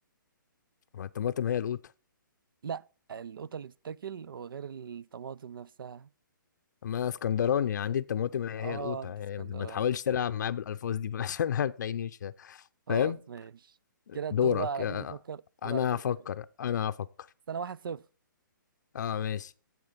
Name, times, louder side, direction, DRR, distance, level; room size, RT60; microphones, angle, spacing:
voice 1, 0.9-1.8 6.8-12.6 12.9-13.2 14.1-15.1 15.6-17.1 18.9-19.5, left 9 dB, 60° left, 0.5 m, -30 dB
voice 2, 2.6-6.1 8.6-9.9 12.9-13.8 14.1-16.2 17.5-18.1, right 7 dB, 85° right, 0.4 m, -39 dB
9.5 x 7.6 x 5.0 m
hypercardioid pair, 165°, 11 cm